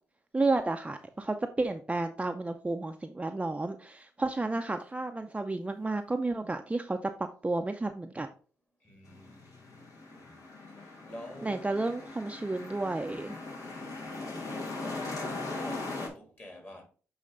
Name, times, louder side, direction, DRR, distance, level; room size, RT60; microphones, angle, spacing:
voice 1, 0.3-7.1 7.4-8.3 11.4-13.3, right 2 dB, 20° right, 0.6 m, -31 dB
voice 2, 8.8-10.4 10.8-11.7 13.5-14.1 15.4-16.8, equal, 30° left, 3.1 m, -49 dB
sound 1, 9.0-16.1, left 2 dB, 60° left, 1.9 m, -40 dB
8.3 x 3.2 x 3.8 m
hypercardioid pair, 45°, 6 cm